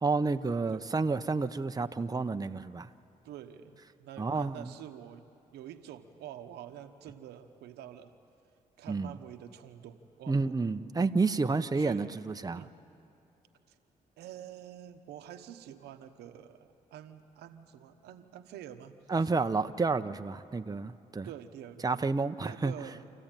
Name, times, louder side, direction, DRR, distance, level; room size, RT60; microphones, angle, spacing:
voice 1, 0.0-2.9 4.2-4.7 8.9-9.1 10.3-12.6 19.1-21.3 21.8-22.7, right 4 dB, 20° right, 9 dB, 0.8 m, -30 dB
voice 2, 3.2-5.3 5.5-8.1 8.8-10.5 11.0-11.1 11.8-12.2 12.5-12.7 14.2-18.9 19.2-19.5 21.2-22.0 22.4-23.1, right 10 dB, 90° right, 8 dB, 1.0 m, -47 dB
27.0 x 14.5 x 9.0 m, 2.6 s
supercardioid pair, 55°, 17 cm